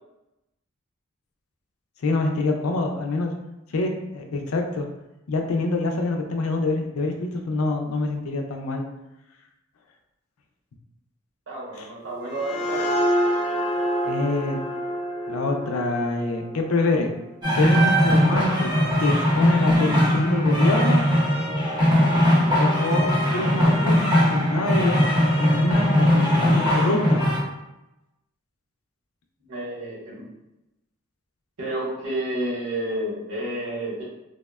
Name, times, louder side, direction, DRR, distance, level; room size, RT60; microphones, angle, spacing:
voice 1, 2.0-3.3 3.7-4.9 5.3-8.9 11.8-11.9 14.1-14.6 15.3-17.1 17.5-21.0 22.5-25.0 25.4-27.2, left 2 dB, 85° left, 3 dB, 0.4 m, -25 dB
voice 2, 11.5-12.9 29.4-30.3 31.6-34.0, right 1 dB, 80° right, -5 dB, 1.0 m, -30 dB
sound 1, 12.1-17.5, equal, 35° left, 0.5 m, -27 dB
sound 2, 17.4-27.4, equal, 20° right, 0.7 m, -20 dB
3.4 x 2.1 x 2.3 m, 0.94 s
head